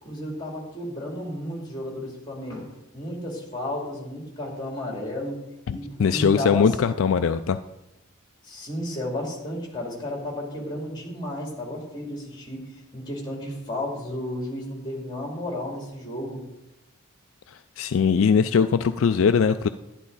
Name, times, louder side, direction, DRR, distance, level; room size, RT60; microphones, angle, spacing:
voice 1, 0.0-6.8 8.4-12.6 12.9-16.4, left 1 dB, 20° left, 0 dB, 2.7 m, -33 dB
voice 2, 5.7-7.6 17.5-19.7, left 6 dB, 65° left, 10 dB, 0.3 m, -21 dB
11.0 x 10.5 x 4.0 m, 0.91 s
head